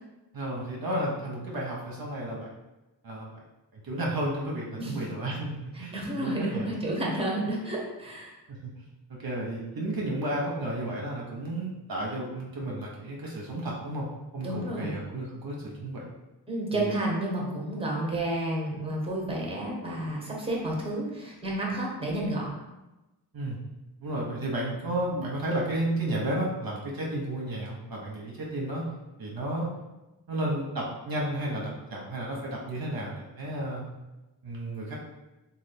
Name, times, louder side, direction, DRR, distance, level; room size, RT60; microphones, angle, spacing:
voice 1, 0.3-2.5 3.0-3.3 3.7-6.7 8.5-8.7 9.2-14.1 14.3-16.1 16.7-16.9 17.4-17.5 23.3-23.6 24.0-28.8 29.2-29.7 30.3-33.8 34.4-35.0, right 1 dB, 55° right, -3 dB, 0.7 m, -32 dB
voice 2, 5.9-8.3 14.4-14.9 16.5-22.5, right 1 dB, 15° right, -3 dB, 0.9 m, -31 dB
3.0 x 2.3 x 3.3 m, 1.0 s
cardioid pair, 50°, 43 cm